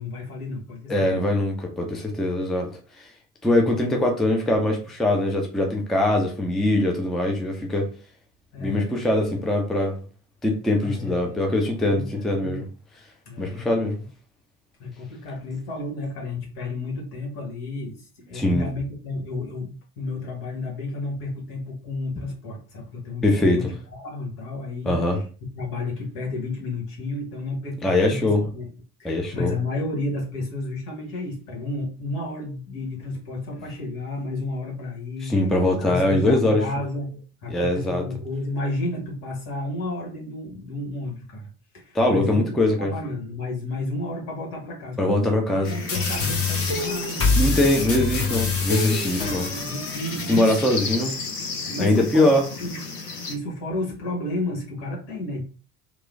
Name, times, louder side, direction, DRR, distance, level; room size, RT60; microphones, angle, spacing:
voice 1, 0.0-1.2 8.5-9.4 10.8-12.7 13.2-14.0 14.8-25.2 25.5-28.7 29.0-35.3 35.8-41.5 41.7-42.4 42.7-47.5 47.8-47.9 49.5-50.8 51.7-52.3 52.6-52.7 53.3-55.4, left 2 dB, 65° left, -2 dB, 1.3 m, -32 dB
voice 2, 0.9-2.7 3.0-3.1 3.4-7.9 8.6-10.0 10.4-12.6 13.4-14.0 18.3-18.7 23.2-23.7 24.8-25.2 27.8-28.4 29.0-29.5 35.2-36.6 37.5-38.0 41.9-42.9 45.0-45.7 47.4-49.5 50.3-51.2 51.8-52.4, left 1 dB, ahead, 2 dB, 0.4 m, -22 dB
sound 1, 45.6-53.4, left 4 dB, 85° left, 0.7 m, -34 dB
sound 2, 45.9-50.9, left 3 dB, 30° left, 1.0 m, -26 dB
3.0 x 2.1 x 2.5 m, 0.36 s
figure-of-eight pair, 65°, 45 cm